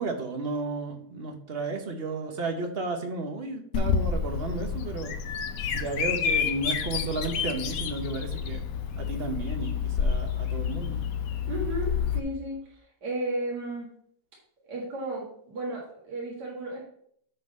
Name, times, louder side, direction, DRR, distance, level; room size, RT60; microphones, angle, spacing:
voice 1, 0.0-5.1 5.7-8.6 9.0-11.1, right 3 dB, 40° right, 5 dB, 0.9 m, -33 dB
Bird vocalization bird call bird song, 3.7-12.2, left 6 dB, 60° left, 1.0 m, -29 dB
voice 2, 11.5-13.9 14.7-16.8, right 1 dB, 65° right, -4 dB, 2.4 m, -34 dB
9.3 x 3.9 x 5.3 m, 0.66 s
omnidirectional pair, 1.9 m